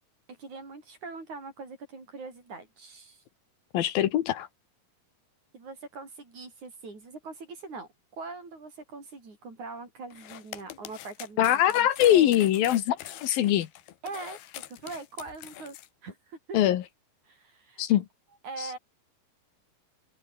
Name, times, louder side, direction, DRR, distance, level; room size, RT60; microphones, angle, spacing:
voice 1, 0.3-3.2 5.5-7.9 8.2-12.3 14.0-15.8 16.0-16.6 17.3-17.8 18.4-18.8, right 3 dB, 50° right, 7.9 m, -42 dB
voice 2, 3.7-4.5 11.4-13.7 16.5-16.8 17.8-18.1 18.6-18.7, left 12 dB, 75° left, 3.0 m, -23 dB
sound 1, 10.1-15.9, left 13 dB, 90° left, 3.4 m, -44 dB
omnidirectional pair, 4.4 m